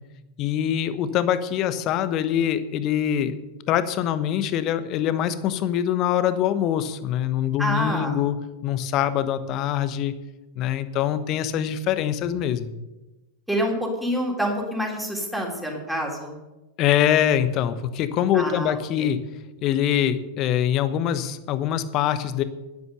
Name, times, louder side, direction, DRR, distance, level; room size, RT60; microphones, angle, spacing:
voice 1, 0.4-3.3 3.7-8.4 8.6-10.1 10.6-12.7 16.8-19.2 19.6-22.4, left 10 dB, 35° left, 12 dB, 1.1 m, -24 dB
voice 2, 7.6-8.1 13.5-16.4 18.3-19.1, equal, ahead, -1 dB, 3.4 m, -27 dB
11.0 x 10.5 x 6.8 m, 1.0 s
figure-of-eight pair, 90°, 0 cm